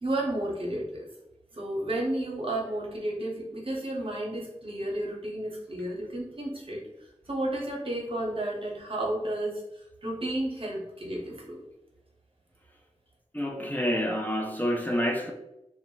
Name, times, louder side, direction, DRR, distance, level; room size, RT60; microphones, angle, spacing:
voice 1, 0.0-1.0 1.5-6.8 7.3-9.6 10.0-11.6, right 1 dB, 50° right, -2 dB, 0.8 m, -32 dB
voice 2, 13.3-15.3, equal, 15° left, 1 dB, 0.3 m, -28 dB
2.1 x 2.0 x 3.8 m, 0.91 s
wide cardioid pair, 55°, 12 cm